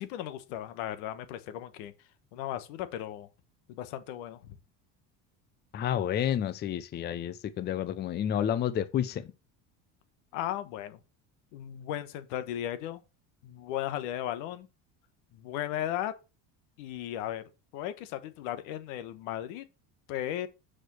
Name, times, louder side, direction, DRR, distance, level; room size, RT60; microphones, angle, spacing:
voice 1, 0.0-1.9 2.3-3.3 3.7-4.6 10.3-11.0 11.5-13.0 13.4-14.7 15.3-16.1 16.8-17.4 17.7-19.6 20.1-20.5, left 12 dB, 90° left, 1.2 m, -36 dB
voice 2, 5.7-9.2, left 10 dB, 30° left, 0.6 m, -30 dB
6.3 x 5.1 x 6.1 m
cardioid pair, 145°, 36 cm